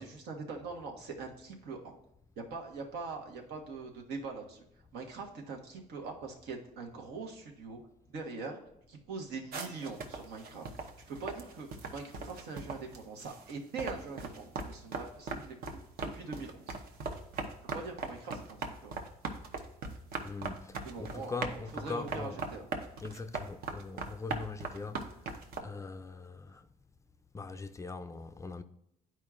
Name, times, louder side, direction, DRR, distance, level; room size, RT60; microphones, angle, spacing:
voice 1, 0.0-1.9 2.4-4.6 4.9-7.8 8.1-8.6 8.9-10.6 11.1-15.8 16.1-16.7 17.7-18.9 20.8-22.6, right 4 dB, 80° right, 1.3 m, -42 dB
sound 1, 9.5-13.5 13.8-25.6, right 3 dB, 60° right, 0.9 m, -39 dB
voice 2, 20.2-22.3 23.0-25.1 25.6-26.6 27.3-28.6, left 4 dB, 20° left, 0.3 m, -41 dB
10.5 x 4.5 x 2.4 m
cardioid pair, 110°, 17 cm